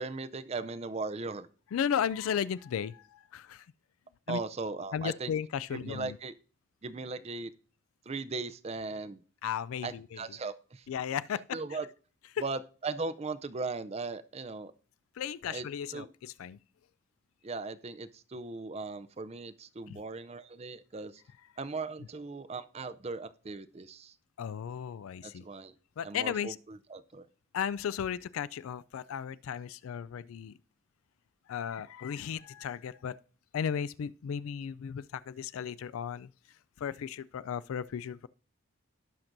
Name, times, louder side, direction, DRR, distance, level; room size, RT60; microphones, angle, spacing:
voice 1, 0.0-1.5 4.3-5.3 5.7-6.3 6.8-7.5 8.1-9.2 9.8-10.9 11.5-11.9 12.4-14.7 15.5-15.7 15.9-16.1 17.4-21.2 21.6-24.1 25.2-25.7 26.0-27.3, right 3 dB, 30° right, 0.4 m, -38 dB
voice 2, 1.7-3.6 4.3-4.4 4.9-6.2 9.4-10.2 10.9-11.6 12.3-12.4 15.2-16.6 19.9-20.0 24.4-25.5 26.0-26.6 27.5-30.6 31.5-33.2 33.5-36.3 36.8-38.3, left 8 dB, 80° left, 0.3 m, -35 dB
17.0 x 5.9 x 2.6 m
head